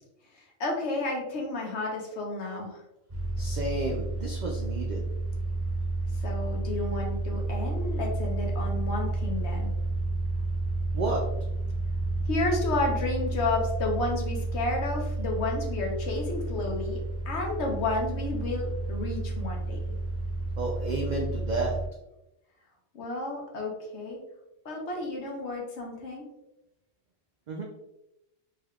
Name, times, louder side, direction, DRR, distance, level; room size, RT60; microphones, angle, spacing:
voice 1, 0.6-2.8 6.2-9.7 12.3-17.0 17.3-19.8 22.9-24.2 24.6-26.3, left 2 dB, 65° left, 0 dB, 1.0 m, -31 dB
sound 1, 3.1-21.9, right 2 dB, 30° right, 1.5 m, -31 dB
voice 2, 3.4-5.0 10.9-11.2 20.6-21.8 27.5-27.6, right 2 dB, 70° right, 0 dB, 0.4 m, -31 dB
3.5 x 3.3 x 2.3 m, 0.93 s
omnidirectional pair, 1.3 m